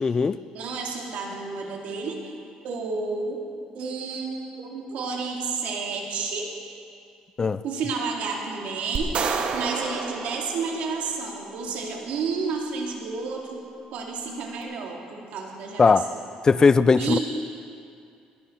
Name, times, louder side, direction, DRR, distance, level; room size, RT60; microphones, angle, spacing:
voice 1, 0.0-0.4 7.4-7.6 15.8-16.1 16.4-17.2, left 4 dB, 25° left, 15 dB, 0.3 m, -18 dB
voice 2, 0.5-2.3 2.6-3.4 3.7-6.6 7.6-13.6 13.9-16.0 17.0-17.2, right 4 dB, 75° right, 0 dB, 2.3 m, -31 dB
sound 1, 9.0-11.3, right 5 dB, 50° right, 0.9 m, -30 dB
20.0 x 11.0 x 4.4 m, 2.4 s
cardioid pair, 125°, 2 cm